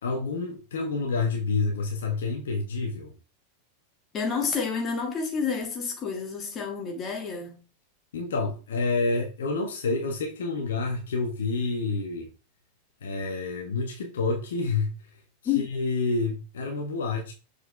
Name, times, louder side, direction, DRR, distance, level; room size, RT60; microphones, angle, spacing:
voice 1, 0.0-3.1 8.1-12.3 13.0-15.0 15.6-17.3, left 3 dB, 60° left, 1.4 m, -28 dB
voice 2, 4.1-7.6 15.4-15.7, left 6 dB, 25° left, 2.0 m, -29 dB
6.8 x 4.8 x 3.2 m
figure-of-eight pair, 90°, 0 cm